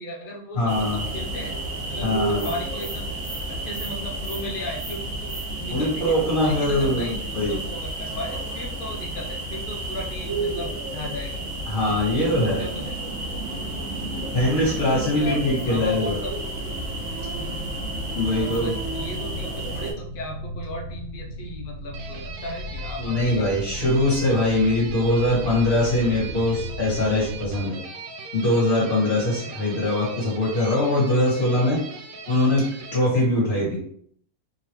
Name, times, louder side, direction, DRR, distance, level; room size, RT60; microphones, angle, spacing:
voice 1, 0.0-1.6 1.9-3.1 3.6-6.1 6.4-11.4 12.1-13.0 14.1-14.4 14.8-16.3 17.4-17.7 18.2-23.5 29.1-29.6, equal, 75° left, 1 dB, 0.4 m, -36 dB
voice 2, 0.5-1.0 2.0-2.5 5.7-7.6 11.7-12.7 14.3-16.2 18.1-18.7 23.0-27.8 28.3-31.8 32.3-33.8, left 1 dB, 35° left, -5 dB, 1.7 m, -22 dB
sound 1, 0.7-19.9, right 2 dB, 55° right, 1.3 m, -31 dB
sound 2, 10.1-27.6, equal, 85° right, 1.5 m, -38 dB
sound 3, 21.9-33.0, right 4 dB, 70° right, 0.8 m, -40 dB
3.7 x 3.0 x 3.0 m, 0.63 s
omnidirectional pair, 1.7 m